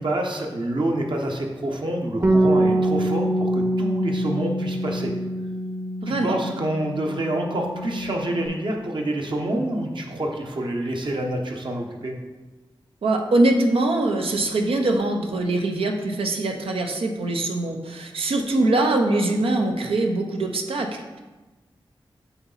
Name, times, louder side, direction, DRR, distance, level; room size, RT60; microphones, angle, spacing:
voice 1, 0.0-5.1 6.1-12.1, right 1 dB, 60° right, 1 dB, 1.0 m, -27 dB
Bass guitar, 2.2-8.5, right 1 dB, 30° right, 0.8 m, -24 dB
voice 2, 6.0-6.4 13.0-20.9, right 2 dB, 85° right, 3 dB, 0.7 m, -22 dB
8.0 x 3.0 x 4.0 m, 1.2 s
cardioid pair, 40°, 9 cm